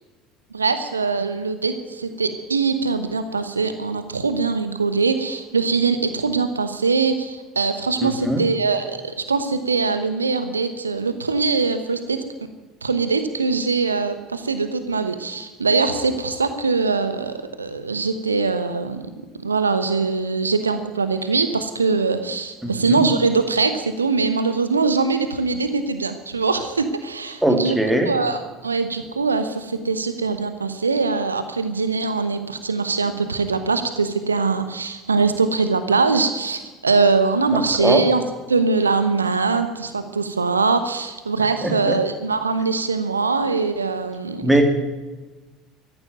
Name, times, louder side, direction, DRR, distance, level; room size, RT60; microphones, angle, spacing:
voice 1, 0.5-12.2 12.8-19.0 19.4-27.8 28.1-38.2 38.5-44.6, right 4 dB, 80° right, 10 dB, 1.0 m, -22 dB
voice 2, 8.0-8.4 22.6-23.0 27.4-28.1 37.8-38.1 41.6-42.0 44.4-44.6, right 1 dB, 5° right, 4 dB, 3.0 m, -20 dB
14.5 x 11.0 x 9.1 m, 1.2 s
figure-of-eight pair, 65°, 0 cm